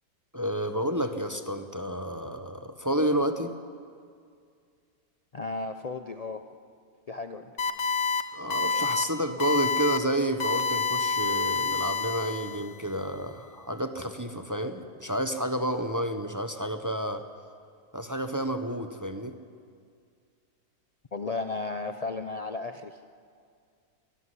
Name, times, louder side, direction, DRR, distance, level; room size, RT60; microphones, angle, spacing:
voice 1, 0.3-3.5 8.3-17.3 17.9-19.3, right 1 dB, 15° right, 8 dB, 0.7 m, -30 dB
voice 2, 5.3-6.5 7.1-7.5 21.1-23.0, left 3 dB, 75° left, 7 dB, 0.3 m, -34 dB
sound 1, 7.6-8.2 8.5-9.0 9.4-10.0 10.4-12.7, left 4 dB, 45° left, 1.4 m, -28 dB
24.0 x 14.0 x 9.8 m, 2.2 s
omnidirectional pair, 1.7 m